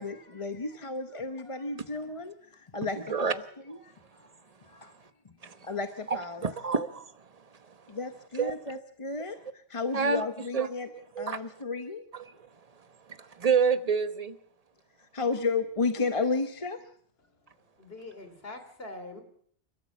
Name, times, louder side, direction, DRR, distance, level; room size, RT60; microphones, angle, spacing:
voice 1, 0.0-3.4 3.7-3.9 4.7-4.9 5.6-6.5 7.9-10.9 11.2-12.0 15.1-16.8, left 4 dB, 30° left, 1.0 m, -33 dB
voice 2, 6.1-7.1 8.4-8.5 9.9-10.2 10.5-11.4 12.1-12.3 13.2-14.4, right 5 dB, 35° right, 1.1 m, -28 dB
voice 3, 17.4-19.2, left 2 dB, 60° left, 3.5 m, -44 dB
29.0 x 13.5 x 7.2 m
omnidirectional pair, 1.1 m